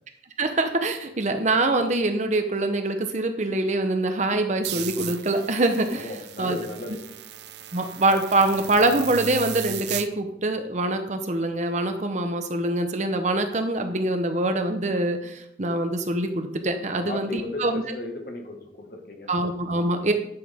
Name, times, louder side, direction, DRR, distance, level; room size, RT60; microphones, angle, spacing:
voice 1, 0.4-6.6 7.7-17.9 19.3-20.1, right 2 dB, 40° right, 6 dB, 0.8 m, -24 dB
sound 1, 4.6-10.1, right 10 dB, 70° right, 0.5 m, -36 dB
voice 2, 5.9-7.0 17.0-17.6 17.9-19.3, left 2 dB, 55° left, 2 dB, 1.7 m, -35 dB
11.0 x 6.1 x 3.6 m, 0.75 s
head